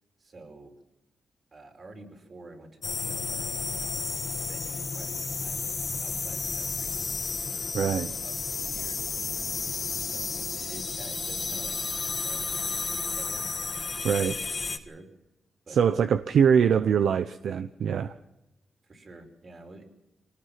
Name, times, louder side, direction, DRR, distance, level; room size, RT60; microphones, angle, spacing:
voice 1, 0.2-0.8 1.5-3.9 4.3-5.7 6.0-7.0 7.5-7.7 8.1-9.1 10.0-13.5 14.7-15.1 15.6-16.2 16.5-17.3 18.8-19.8, right 2 dB, 45° right, 3 dB, 4.9 m, -49 dB
sound 1, 2.8-14.8, left 4 dB, 40° left, 1.6 m, -32 dB
voice 2, 7.7-8.1 14.0-14.4 15.7-18.1, right 7 dB, 75° right, 10 dB, 0.8 m, -23 dB
24.5 x 18.5 x 5.9 m, 0.93 s
cardioid pair, 85°, 0 cm